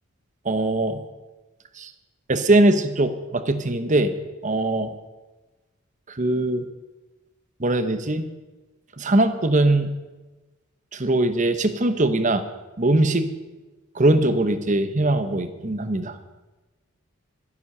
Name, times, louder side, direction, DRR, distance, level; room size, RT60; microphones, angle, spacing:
voice 1, 0.4-1.0 1.8-1.9 2.3-4.2 4.4-4.9 6.1-6.6 7.6-8.3 9.0-9.9 10.9-12.4 12.8-13.3 13.9-16.2, right 2 dB, 35° right, 10 dB, 0.9 m, -21 dB
13.0 x 10.5 x 6.7 m, 1.2 s
head